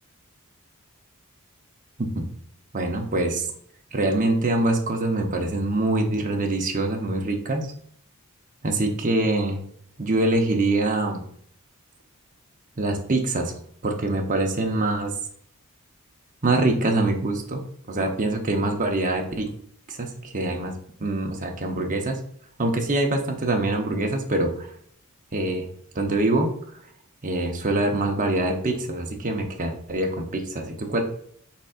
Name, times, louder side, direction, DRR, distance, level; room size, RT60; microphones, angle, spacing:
voice 1, 2.7-3.5 3.9-7.7 8.6-9.6 10.0-11.2 12.8-13.5 13.8-15.1 16.4-17.6 17.9-19.5 19.9-20.7 21.0-22.2 22.6-24.7 25.3-25.7 25.9-26.5 27.2-31.0, right 2 dB, 35° right, 2 dB, 0.8 m, -24 dB
5.2 x 4.1 x 2.4 m, 0.65 s
head